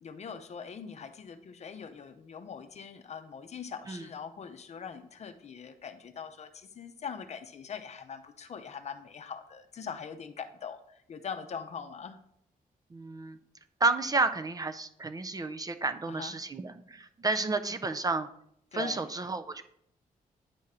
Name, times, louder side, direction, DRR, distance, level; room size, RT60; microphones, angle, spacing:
voice 1, 0.0-12.2 16.1-16.3 18.7-19.1, left 6 dB, 45° left, 9 dB, 0.6 m, -42 dB
voice 2, 12.9-13.4 13.8-18.3 18.7-19.6, right 3 dB, 25° right, 10 dB, 0.4 m, -31 dB
9.6 x 3.7 x 4.2 m, 0.70 s
wide cardioid pair, 145°, 15 cm